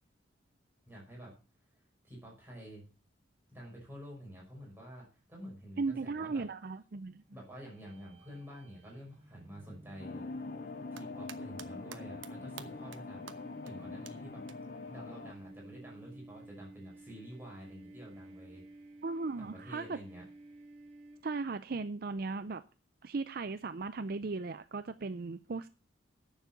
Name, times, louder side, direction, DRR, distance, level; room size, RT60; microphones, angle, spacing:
voice 1, 0.9-1.3 2.0-2.8 3.5-6.4 7.3-10.3 10.9-14.4 14.9-18.6 19.4-20.2, equal, 10° right, 5.7 m, -49 dB
voice 2, 5.8-7.2 19.0-20.0 21.2-22.6 23.0-25.7, right 3 dB, 50° right, 0.5 m, -37 dB
sound 1, 7.6-21.6, right 2 dB, 30° right, 1.4 m, -54 dB
sound 2, 10.0-15.3, left 3 dB, 45° left, 0.6 m, -44 dB
sound 3, 10.7-11.7 11.9-12.3 12.6-13.0 13.3-13.4 13.7-13.8 14.1-14.2 14.5-14.6 16.1-16.2, right 8 dB, 80° right, 1.1 m, -47 dB
10.5 x 7.2 x 7.1 m
head